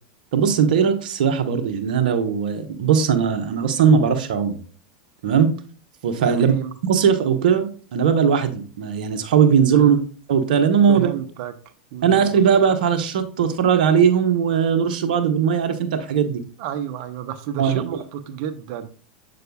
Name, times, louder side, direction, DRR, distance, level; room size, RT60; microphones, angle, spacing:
voice 1, 0.3-4.5 5.2-5.5 6.0-6.5 6.8-10.0 10.3-11.1 12.0-16.4 17.6-17.8, right 7 dB, 70° right, 1.2 m, -19 dB
voice 2, 6.3-6.7 9.7-10.0 10.9-11.5 11.9-12.3 16.6-18.9, right 10 dB, 55° right, 1.0 m, -31 dB
7.9 x 6.5 x 2.4 m
hypercardioid pair, 100°, 5 cm